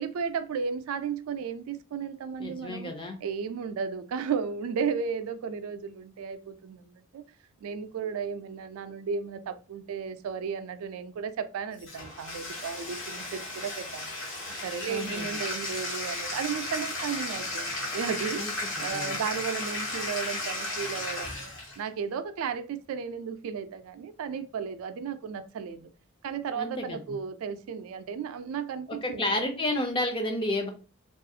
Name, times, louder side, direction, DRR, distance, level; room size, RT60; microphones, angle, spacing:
voice 1, 0.0-2.9 3.2-7.2 7.6-14.1 14.6-21.5 21.8-25.9 26.2-29.3, right 6 dB, 80° right, 0.3 m, -34 dB
voice 2, 2.4-3.2 14.9-15.4 18.4-19.1 26.5-27.0 29.0-30.7, left 1 dB, 25° left, 0.4 m, -31 dB
Bathtub (filling or washing), 11.8-21.8, left 2 dB, 60° left, 0.9 m, -34 dB
2.4 x 2.3 x 2.6 m
head